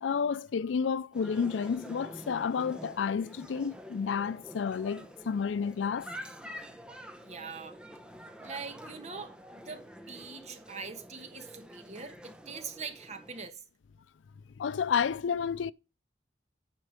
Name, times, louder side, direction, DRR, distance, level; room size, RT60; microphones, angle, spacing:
voice 1, 0.0-6.1 14.6-15.7, left 6 dB, 85° left, 0.4 m, -31 dB
sound 1, 1.1-13.5, equal, 5° right, 0.8 m, -47 dB
voice 2, 7.2-7.8 8.4-13.6, right 5 dB, 35° right, 1.3 m, -43 dB
9.6 x 4.5 x 5.1 m
head